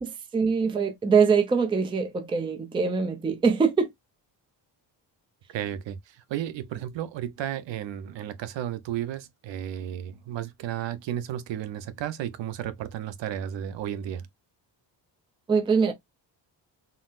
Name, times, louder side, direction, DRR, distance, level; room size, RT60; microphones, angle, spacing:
voice 1, 0.0-3.9 15.5-15.9, right 5 dB, 10° right, 0.3 m, -23 dB
voice 2, 5.5-14.3, right 10 dB, 75° right, 0.6 m, -33 dB
3.8 x 2.0 x 2.4 m
wide cardioid pair, 165°, 44 cm